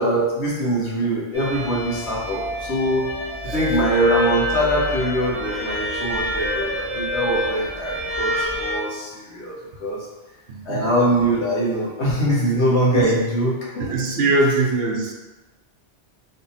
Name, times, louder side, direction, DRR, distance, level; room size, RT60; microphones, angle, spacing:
voice 1, 0.0-3.1 3.5-9.5 9.8-10.0 10.6-14.0, right 1 dB, 80° left, -5 dB, 1.4 m, -22 dB
sound 1, 1.3-8.8, equal, 60° left, 1.4 m, -28 dB
voice 2, 10.5-10.9 12.9-13.0 13.9-15.1, right 2 dB, 65° right, 0 dB, 0.9 m, -21 dB
3.3 x 2.8 x 4.1 m, 1.1 s
omnidirectional pair, 1.1 m